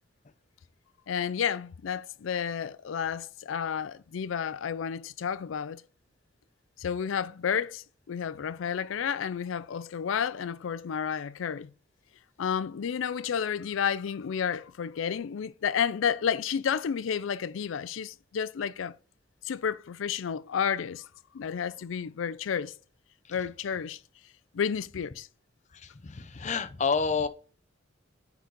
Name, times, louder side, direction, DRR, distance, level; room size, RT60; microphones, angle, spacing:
voice 1, 1.1-5.8 6.8-11.7 12.4-18.9 19.4-21.1 21.3-22.7 23.3-24.0 24.5-25.3, left 7 dB, 80° left, 0.4 m, -31 dB
voice 2, 25.7-27.3, left 5 dB, 35° left, 0.6 m, -29 dB
9.4 x 4.0 x 4.0 m
head